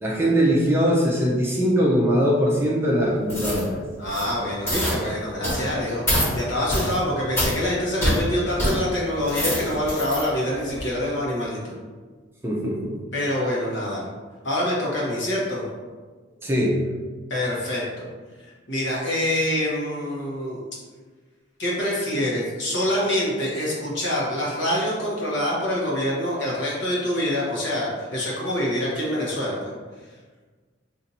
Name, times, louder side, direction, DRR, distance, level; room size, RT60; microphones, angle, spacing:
voice 1, 0.0-3.8 12.4-13.0 16.4-16.8, equal, 10° right, -4 dB, 0.5 m, -21 dB
sound 1, 3.3-3.6 4.0-4.3 4.7-5.0 5.4-5.7 6.1-6.3 6.7-6.9 7.4-7.5 8.0-8.2 8.6-8.7 9.2-10.2 10.7-10.8, equal, 15° left, 1.3 m, -25 dB
voice 2, 4.0-11.7 13.1-14.0 14.4-15.6 17.3-18.1 18.7-20.6 21.6-29.6, left 1 dB, 65° left, -5 dB, 1.0 m, -25 dB
2.7 x 2.5 x 4.2 m, 1.4 s
head